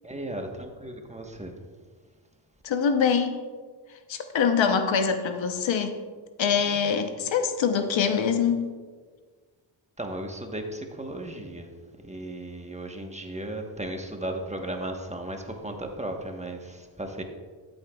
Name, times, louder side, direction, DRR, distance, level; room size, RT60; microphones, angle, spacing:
voice 1, 0.0-1.5 6.5-6.8 10.0-11.7 12.0-17.2, right 1 dB, 15° right, 3 dB, 1.1 m, -35 dB
voice 2, 2.6-3.4 4.1-6.0 6.4-8.7, left 6 dB, 65° left, 7 dB, 0.9 m, -24 dB
13.0 x 8.0 x 2.3 m, 1.5 s
cardioid pair, 70°, 48 cm